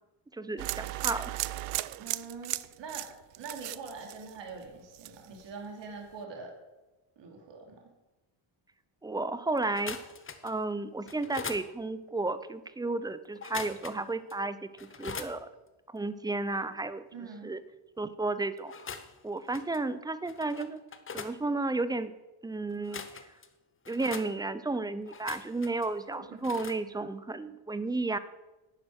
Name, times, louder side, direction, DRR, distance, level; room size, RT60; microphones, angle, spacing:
voice 1, 0.3-1.3 9.0-10.0 10.4-15.5 15.9-17.6 18.0-18.7 19.2-20.8 21.1-22.1 22.4-23.0 23.9-28.2, right 2 dB, 10° right, 14 dB, 0.5 m, -33 dB
sound 1, 0.6-4.6 4.9-5.4, right 17 dB, 85° right, 0.6 m, -36 dB
voice 2, 2.0-3.0 3.4-6.5 7.2-7.8 17.1-17.5 26.2-26.6, right 4 dB, 60° right, 1 dB, 2.9 m, -44 dB
sound 2, 9.6-10.6 11.1-11.7 13.4-14.0 14.3-14.4 14.8-15.3 18.6-19.2 19.5-19.8 20.3-21.4 22.7-23.5 23.9-24.3 25.0-25.9 26.4-26.8, left 5 dB, 25° left, 0.9 m, -42 dB
11.0 x 9.5 x 6.3 m, 1.1 s
cardioid pair, 135°, 50 cm